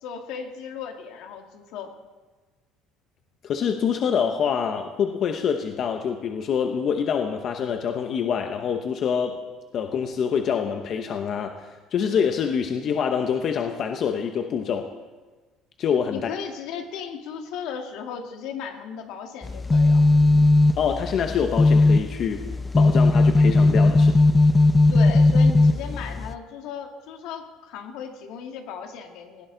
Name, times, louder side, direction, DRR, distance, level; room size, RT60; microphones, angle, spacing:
voice 1, 0.0-1.9 16.1-20.0 24.9-29.5, left 7 dB, 75° left, 4 dB, 2.0 m, -36 dB
voice 2, 3.4-9.4 9.7-14.9 15.8-16.3 20.8-22.4 22.7-24.2, left 7 dB, 45° left, 5 dB, 1.0 m, -26 dB
sound 1, 19.4-26.3, left 2 dB, 15° left, 0.4 m, -18 dB
19.5 x 16.0 x 4.0 m, 1.3 s
cardioid pair, 140°, 0 cm